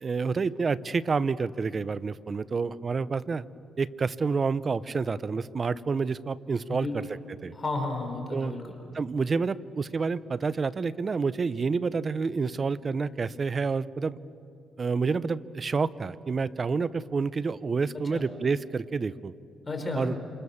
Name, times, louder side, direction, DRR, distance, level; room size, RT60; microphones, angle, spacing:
voice 1, 0.0-3.4 3.8-7.0 7.4-7.5 8.3-8.5 8.9-14.2 14.8-19.3 19.9-20.2, right 4 dB, 35° right, 17 dB, 0.8 m, -28 dB
voice 2, 6.7-7.0 7.5-8.6 18.0-18.2 19.6-20.2, left 2 dB, 25° left, 3 dB, 5.0 m, -32 dB
28.0 x 26.5 x 7.3 m, 2.5 s
cardioid pair, 90°, 0 cm